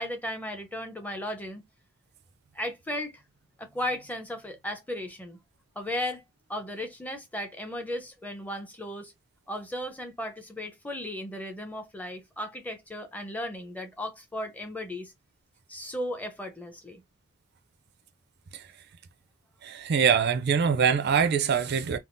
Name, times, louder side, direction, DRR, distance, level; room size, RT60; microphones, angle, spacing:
voice 1, 0.0-1.6 2.5-3.2 3.6-5.4 5.8-6.2 6.5-9.1 9.5-15.1 15.7-17.0, left 1 dB, 5° left, 0.6 m, -35 dB
voice 2, 19.6-22.0, right 6 dB, 50° right, 0.4 m, -24 dB
3.5 x 2.3 x 2.5 m
head